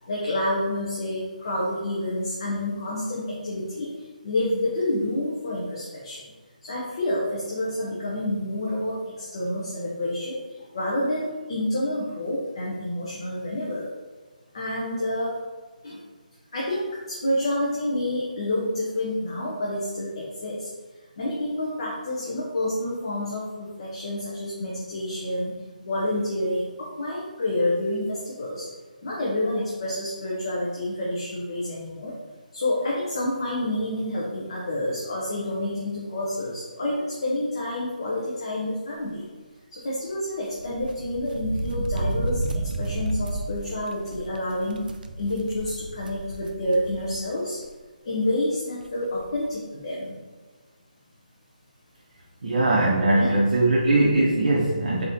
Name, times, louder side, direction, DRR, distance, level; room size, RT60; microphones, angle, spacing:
voice 1, 0.0-6.2 6.6-13.9 14.5-15.4 15.8-16.0 16.5-20.7 21.2-25.5 25.8-28.7 29.0-32.1 32.5-39.3 39.7-44.9 45.2-47.6 48.0-50.1 53.1-53.3, left 1 dB, 35° left, -5 dB, 0.7 m, -28 dB
sound 1, 40.5-47.3 47.6-47.7 48.8-48.9 49.1-49.4, right 2 dB, 80° right, 0.4 m, -32 dB
voice 2, 52.4-55.0, right 2 dB, 65° right, -5 dB, 0.8 m, -20 dB
4.0 x 3.6 x 2.8 m, 1.4 s
hypercardioid pair, 175°, 5 cm